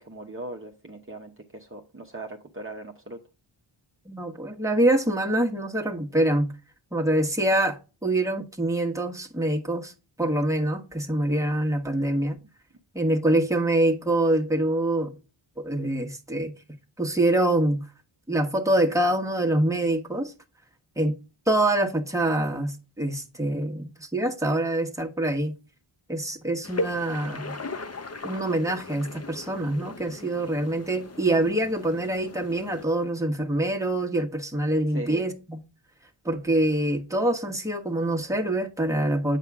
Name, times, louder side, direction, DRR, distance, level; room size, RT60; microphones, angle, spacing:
voice 1, 0.0-3.2 34.9-35.2, right 2 dB, 25° right, 0.9 m, -39 dB
voice 2, 4.1-6.5 6.9-9.9 10.2-12.4 12.9-15.1 15.6-16.5 17.0-17.8 18.3-20.3 21.0-21.1 21.5-25.5 26.1-27.6 28.2-35.6 36.2-39.4, right 1 dB, 5° right, 1.2 m, -25 dB
sound 1, 26.6-32.9, left 2 dB, 30° left, 0.7 m, -37 dB
8.4 x 5.5 x 3.5 m
wide cardioid pair, 90°, 50 cm